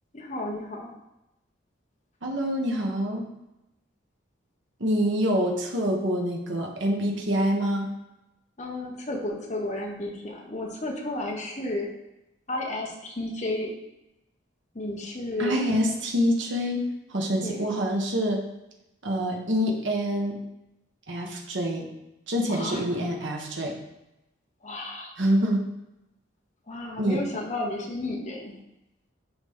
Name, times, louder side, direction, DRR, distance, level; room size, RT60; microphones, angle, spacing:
voice 1, 0.1-1.0 8.6-11.9 12.5-13.7 14.7-15.6 17.4-17.7 22.5-23.0 24.6-25.1 26.7-28.6, left 1 dB, 35° left, -1 dB, 1.3 m, -32 dB
voice 2, 2.2-3.2 4.8-7.9 15.4-16.8 17.1-18.4 19.0-20.4 21.1-21.9 22.3-23.7 25.2-25.6 27.0-27.2, equal, 70° right, 0 dB, 1.4 m, -26 dB
11.5 x 4.1 x 3.6 m, 0.91 s
head